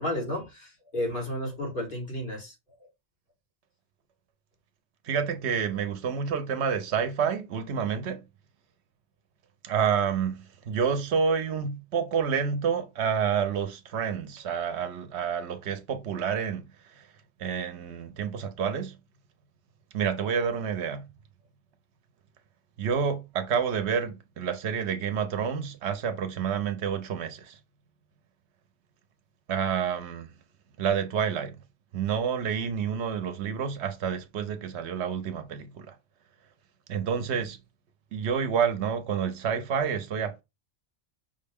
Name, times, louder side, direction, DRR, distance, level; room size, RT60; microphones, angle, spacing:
voice 1, 0.0-2.5, left 1 dB, 50° left, 1.9 m, -32 dB
voice 2, 5.0-8.2 9.6-17.1 17.4-19.0 19.9-21.1 22.8-27.6 29.5-30.3 30.8-31.6 31.9-36.0 36.9-37.6 38.1-40.4, right 7 dB, 80° right, 0.9 m, -29 dB
5.2 x 2.2 x 3.4 m
omnidirectional pair, 1.1 m